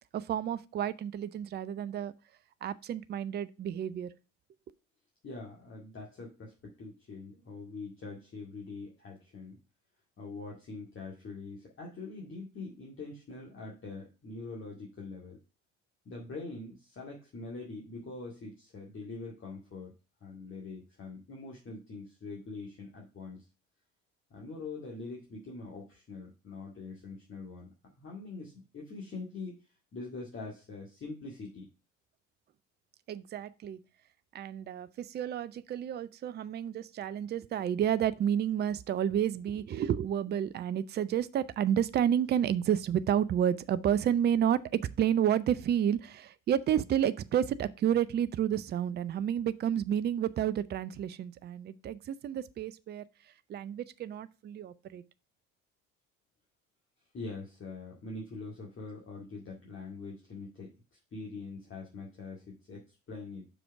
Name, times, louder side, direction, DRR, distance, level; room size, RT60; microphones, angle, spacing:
voice 1, 0.1-2.1 2.6-4.1 33.1-33.8 34.3-53.0 53.5-55.0, right 9 dB, 30° right, 0.5 m, -30 dB
voice 2, 5.2-9.6 10.2-15.4 16.1-19.9 20.2-23.4 24.3-29.6 29.9-31.7 57.1-63.5, left 3 dB, 35° left, 2.1 m, -44 dB
6.0 x 5.0 x 4.6 m
figure-of-eight pair, 55°, 37 cm